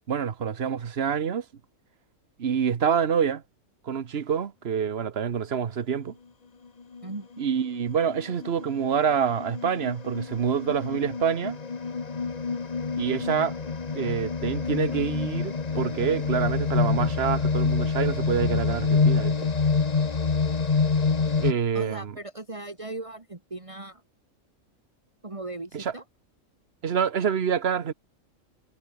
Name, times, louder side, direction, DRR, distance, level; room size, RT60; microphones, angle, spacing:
voice 1, 0.1-1.4 2.4-3.4 3.9-6.1 7.4-11.6 13.0-13.5 13.9-19.3 21.4-22.1 25.7-25.9 26.8-27.9, right 7 dB, 55° right, 1.3 m, -27 dB
sound 1, 6.9-7.1 7.8-21.5, left 5 dB, 35° left, 1.1 m, -27 dB
voice 2, 21.7-24.0 25.2-26.0, right 2 dB, 25° right, 2.2 m, -38 dB
omnidirectional pair, 1.4 m